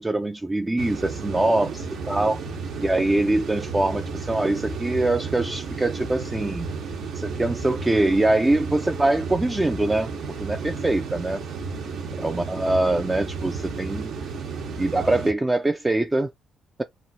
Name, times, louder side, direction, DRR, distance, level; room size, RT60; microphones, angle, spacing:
voice 1, 0.0-2.4 2.8-6.7 7.1-10.1 10.4-11.4 12.2-14.1 14.8-16.3, right 2 dB, 15° right, 0.3 m, -23 dB
sound 1, 0.8-15.3, right 5 dB, 75° right, 0.9 m, -33 dB
2.9 x 2.4 x 2.7 m
cardioid pair, 90°, 0 cm